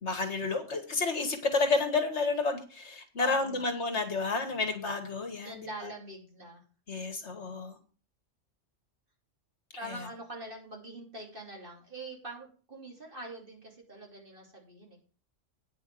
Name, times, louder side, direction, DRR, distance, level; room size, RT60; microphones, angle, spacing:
voice 1, 0.0-5.6 6.9-7.8, left 3 dB, 65° left, 6 dB, 1.8 m, -30 dB
voice 2, 3.2-4.0 5.4-6.6 7.3-7.6 9.7-15.0, right 1 dB, 45° right, -1 dB, 3.2 m, -44 dB
9.4 x 5.6 x 7.5 m, 0.38 s
omnidirectional pair, 1.3 m